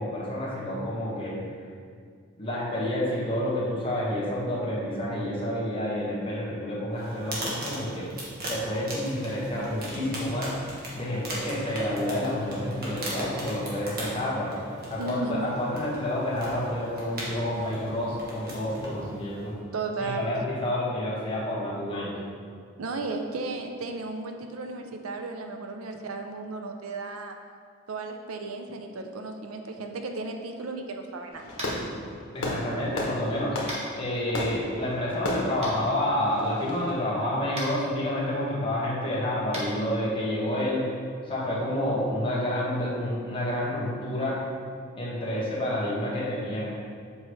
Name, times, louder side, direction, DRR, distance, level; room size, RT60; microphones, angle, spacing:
voice 1, 0.0-1.4 2.4-8.1 8.5-10.5 10.9-19.5 20.0-22.2 32.3-40.9 41.2-44.4 45.0-46.7, left 1 dB, 25° left, -7 dB, 1.5 m, -29 dB
sound 1, 6.9-19.6, right 1 dB, 45° right, 1.4 m, -38 dB
voice 2, 15.0-15.5 19.7-20.3 22.8-27.4 27.9-31.5, right 3 dB, 80° right, 5 dB, 0.5 m, -34 dB
Fireworks, 31.3-36.9, left 1 dB, 85° left, 1.1 m, -35 dB
Tap, 31.5-31.8 33.7-33.8 35.6-35.7 37.5-37.7 39.5-39.6, right 1 dB, 30° right, 1.2 m, -34 dB
7.4 x 4.7 x 3.2 m, 2.1 s
head